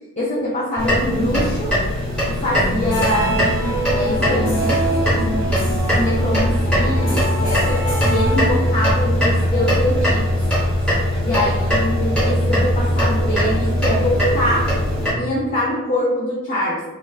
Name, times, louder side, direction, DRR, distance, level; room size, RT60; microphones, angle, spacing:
voice 1, 0.2-1.7 2.3-3.4 3.9-10.3 11.2-14.7 15.2-16.8, left 1 dB, 35° left, -7 dB, 0.4 m, -23 dB
sound 1, 0.8-15.1, equal, 5° left, 0.9 m, -20 dB
sound 2, 2.8-9.1, right 1 dB, 65° left, 1.0 m, -26 dB
3.1 x 2.3 x 2.3 m, 1.0 s
head